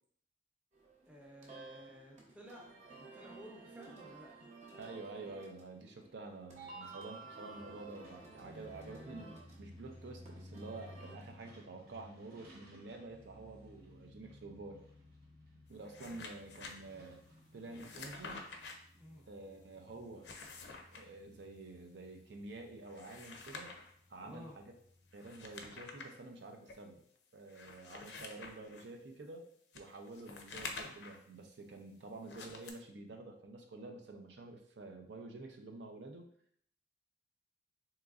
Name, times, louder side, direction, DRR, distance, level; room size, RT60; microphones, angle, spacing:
sound 1, 0.7-11.1, right 3 dB, 40° right, 0.7 m, -54 dB
voice 1, 1.1-4.3 16.0-16.2 18.9-19.3 24.2-24.6, equal, 10° right, -2 dB, 0.6 m, -54 dB
voice 2, 4.8-14.8 15.7-17.2 17.5-18.5 19.3-20.3 20.9-23.7 24.1-24.7 25.1-27.0 27.3-29.5 29.7-36.2, right 2 dB, 75° right, 3 dB, 0.5 m, -49 dB
Truck, 7.5-26.0, left 1 dB, 60° right, 1.0 m, -58 dB
sound 2, 15.7-16.7 17.7-18.7 20.1-21.0 22.8-23.9 25.1-26.1 26.7-26.8 27.5-28.9 29.7-31.2 32.2-32.7, left 4 dB, 75° left, 0.5 m, -48 dB
3.7 x 3.0 x 2.4 m, 0.64 s
head